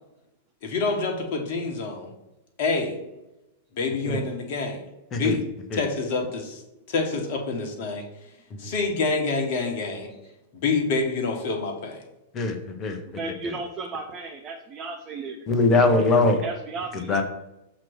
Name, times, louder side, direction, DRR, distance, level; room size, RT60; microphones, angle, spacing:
voice 1, 0.6-2.1 2.6-3.0 3.7-4.9 5.1-5.5 5.7-6.6 6.9-8.1 8.6-10.1 10.5-12.0, left 4 dB, 50° left, 3 dB, 1.4 m, -27 dB
voice 2, 12.3-13.0 15.5-16.4 16.9-17.2, left 3 dB, 25° left, 5 dB, 1.0 m, -22 dB
voice 3, 13.1-15.5 16.4-17.2, right 3 dB, 30° right, 4 dB, 0.7 m, -34 dB
7.3 x 3.1 x 6.1 m, 0.92 s
figure-of-eight pair, 95°, 0 cm